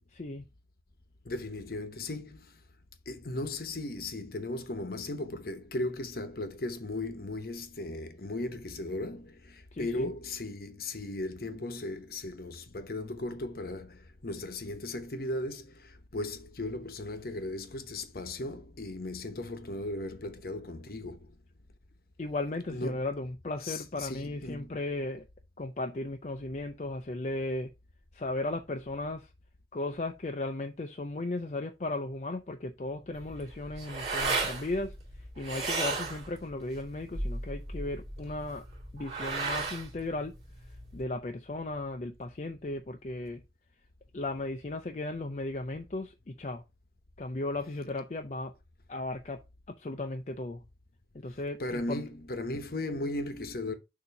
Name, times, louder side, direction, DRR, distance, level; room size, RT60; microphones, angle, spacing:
voice 1, 1.2-2.5 3.1-21.3 22.7-23.0 23.6-24.7 51.6-53.7, left 2 dB, 55° left, 1.0 m, -37 dB
voice 2, 9.7-10.1 22.2-25.3 25.6-27.7 28.1-29.3 29.7-34.9 35.4-38.6 38.9-40.3 40.9-43.4 44.1-46.6 47.2-48.5 48.9-49.4 49.8-50.6 51.1-52.0, left 2 dB, 40° left, 0.5 m, -36 dB
sound 1, 33.1-41.0, right 3 dB, 40° right, 2.4 m, -35 dB
6.8 x 2.8 x 5.8 m
head